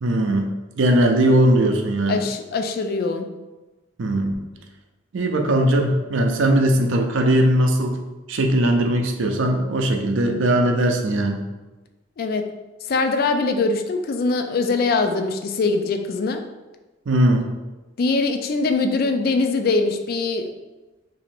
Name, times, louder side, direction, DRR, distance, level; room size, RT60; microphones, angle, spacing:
voice 1, 0.0-2.2 4.0-4.3 5.1-8.0 8.3-11.4 17.1-17.5, right 1 dB, 70° right, 3 dB, 0.5 m, -19 dB
voice 2, 2.1-3.3 12.2-12.4 12.9-16.4 18.0-20.5, left 3 dB, 50° left, 7 dB, 0.3 m, -22 dB
3.0 x 2.7 x 4.2 m, 1.2 s
head